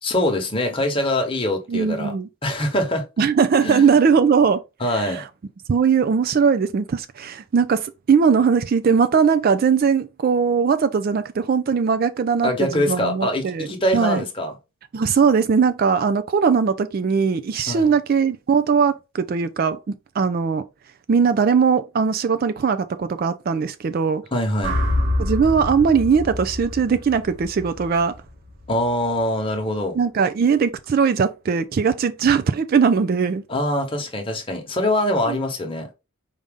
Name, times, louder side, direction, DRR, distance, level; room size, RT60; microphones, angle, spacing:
voice 1, 0.0-2.1 2.4-3.0 3.6-4.0 4.8-5.2 12.4-14.5 17.7-17.9 24.3-24.8 28.7-30.0 33.5-35.9, left 1 dB, 25° left, 1.1 m, -23 dB
voice 2, 1.7-2.3 3.2-4.6 4.9-5.3 5.7-13.7 13.9-14.2 14.9-20.7 21.1-24.2 25.2-28.1 29.9-33.4 35.3-35.4, right 6 dB, 45° right, 0.3 m, -20 dB
sound 1, 24.6-28.8, left 1 dB, 75° right, 3.0 m, -27 dB
5.0 x 2.7 x 3.5 m
head